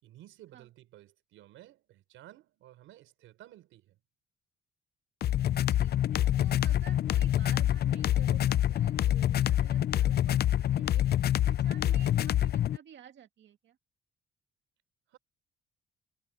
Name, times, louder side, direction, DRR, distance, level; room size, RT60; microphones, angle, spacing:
voice 1, 0.0-4.0 15.1-15.2, right 14 dB, 90° right, 5.1 m, -54 dB
sound 1, 5.2-12.8, left 11 dB, 55° left, 0.5 m, -26 dB
voice 2, 5.8-11.1 11.4-13.8, right 9 dB, 65° right, 2.3 m, -53 dB
cardioid pair, 90°, 20 cm